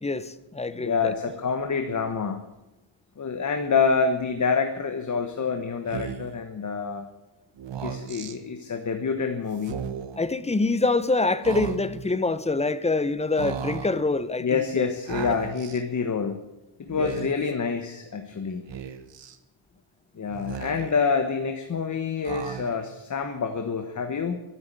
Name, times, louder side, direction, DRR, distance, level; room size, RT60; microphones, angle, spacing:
voice 1, 0.0-1.1 10.2-14.9 17.0-17.2, left 3 dB, 15° left, 0.7 m, -25 dB
voice 2, 0.7-2.4 3.2-7.1 7.8-9.8 14.4-16.4 16.8-18.6 20.2-24.4, left 5 dB, 40° left, 1.3 m, -27 dB
Speech, 5.9-6.4 7.6-8.4 9.6-10.2 11.4-12.1 13.4-14.0 15.1-15.8 16.9-17.5 18.7-19.4 20.3-21.1 22.2-22.9, right 8 dB, 65° right, 1.4 m, -36 dB
13.5 x 9.0 x 8.9 m
cardioid pair, 125°, 48 cm